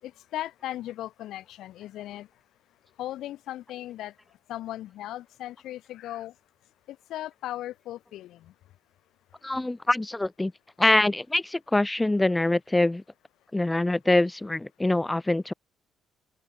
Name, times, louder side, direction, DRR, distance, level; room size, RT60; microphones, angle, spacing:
voice 1, 0.0-2.3 3.0-4.1 4.5-6.3 6.9-8.5, left 13 dB, 65° left, 1.9 m, -37 dB
voice 2, 9.4-10.5 10.8-13.0 13.5-15.5, left 2 dB, 15° left, 0.3 m, -24 dB
open air
hypercardioid pair, 50°, 0 cm